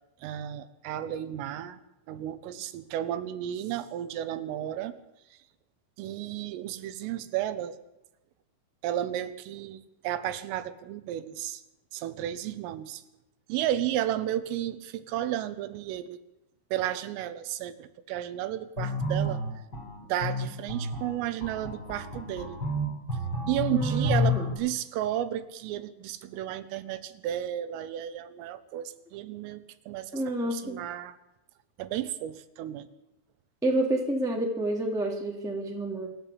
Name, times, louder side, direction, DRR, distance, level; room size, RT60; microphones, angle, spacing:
voice 1, 0.2-1.8 2.1-4.9 6.0-7.8 8.8-11.6 11.9-13.0 13.5-16.2 16.7-19.4 20.0-22.6 23.5-31.2 31.8-32.9, right 12 dB, 85° right, 11 dB, 3.7 m, -33 dB
sound 1, 18.8-24.5, left 1 dB, 20° left, 4.6 m, -30 dB
voice 2, 23.7-24.5 30.1-30.8 33.6-36.1, right 1 dB, ahead, -1 dB, 1.6 m, -29 dB
26.5 x 12.0 x 8.7 m, 0.91 s
omnidirectional pair, 5.8 m